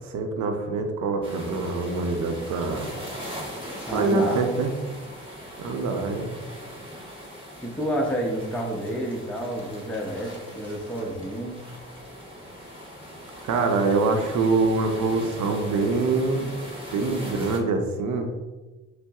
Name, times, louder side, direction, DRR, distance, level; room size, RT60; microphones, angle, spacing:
voice 1, 0.1-2.9 3.9-4.7 5.6-6.4 13.4-16.5 16.9-18.3, right 3 dB, 75° right, 5 dB, 0.6 m, -24 dB
sound 1, 1.2-17.6, equal, 20° right, 0.9 m, -40 dB
voice 2, 3.8-4.4 7.6-11.6, equal, 5° left, -2 dB, 0.6 m, -29 dB
5.2 x 2.0 x 2.3 m, 1.2 s
cardioid pair, 90°, 30 cm